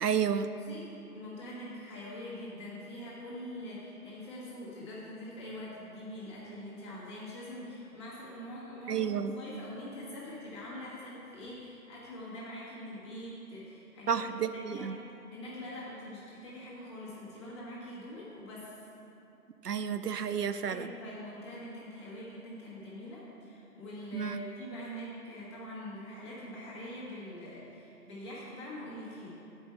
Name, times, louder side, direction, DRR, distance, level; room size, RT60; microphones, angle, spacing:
voice 1, 0.0-0.5 8.9-9.4 14.1-14.9 19.6-20.9 24.1-24.4, right 7 dB, 80° right, 11 dB, 0.6 m, -31 dB
voice 2, 0.5-14.2 14.7-14.9 15.3-18.9 20.7-29.3, left 1 dB, 20° left, -7 dB, 1.5 m, -44 dB
7.8 x 5.4 x 7.2 m, 2.9 s
figure-of-eight pair, 150°, 47 cm